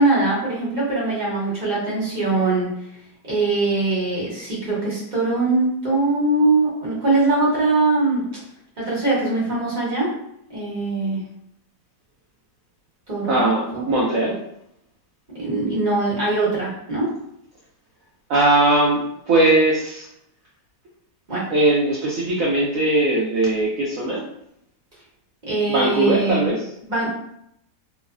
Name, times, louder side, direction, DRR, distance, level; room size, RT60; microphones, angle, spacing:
voice 1, 0.0-2.7 3.3-8.2 8.8-10.1 10.5-11.2 13.1-13.6 15.3-17.1 21.3-21.5 25.5-26.5 26.8-27.1, right 2 dB, 35° right, -7 dB, 0.8 m, -21 dB
voice 2, 13.3-14.4 18.3-20.1 21.5-24.2 25.7-26.6, right 2 dB, 70° right, -4 dB, 0.8 m, -19 dB
3.0 x 2.0 x 2.4 m, 0.75 s
omnidirectional pair, 1.8 m